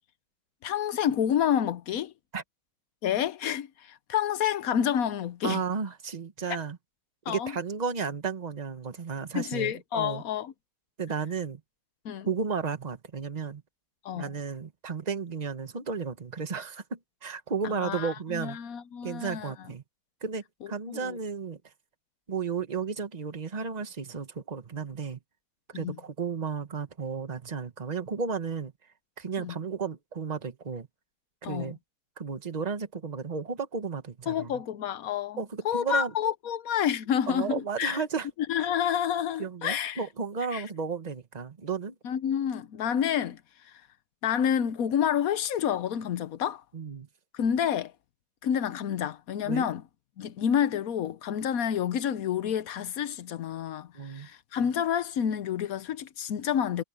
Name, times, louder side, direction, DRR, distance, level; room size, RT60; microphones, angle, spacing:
voice 1, 0.6-2.1 3.0-5.6 7.3-7.5 9.3-10.5 12.0-12.3 14.0-14.3 17.6-19.5 20.6-21.2 25.7-26.0 29.4-29.5 31.4-31.7 34.3-38.0 38.5-40.0 40.5-40.6 42.0-43.4 44.2-46.6 47.3-47.9 48.4-49.8 50.2-53.9 54.1-56.8, left 9 dB, 60° left, 1.0 m, -29 dB
voice 2, 5.4-6.8 7.3-10.2 11.0-11.6 12.2-13.6 14.1-18.6 19.0-19.8 20.2-21.6 22.3-25.2 25.7-28.7 29.2-30.9 31.4-31.8 32.2-34.5 35.4-36.1 37.3-38.3 39.4-41.9 46.7-47.1 49.4-49.7 53.9-54.3, right 5 dB, 25° right, 1.1 m, -33 dB
omnidirectional pair, 2.2 m